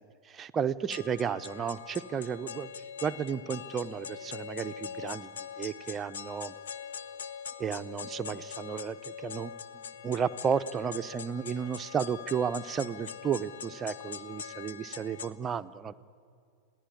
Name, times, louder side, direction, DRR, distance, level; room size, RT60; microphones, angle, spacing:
voice 1, 0.0-2.7 3.0-6.5 7.6-9.5 10.0-15.9, right 7 dB, 25° right, 11 dB, 0.7 m, -33 dB
sound 1, 0.9-15.3, left 7 dB, 65° left, 0.9 m, -43 dB
27.0 x 17.5 x 9.8 m, 2.3 s
figure-of-eight pair, 90°, 0 cm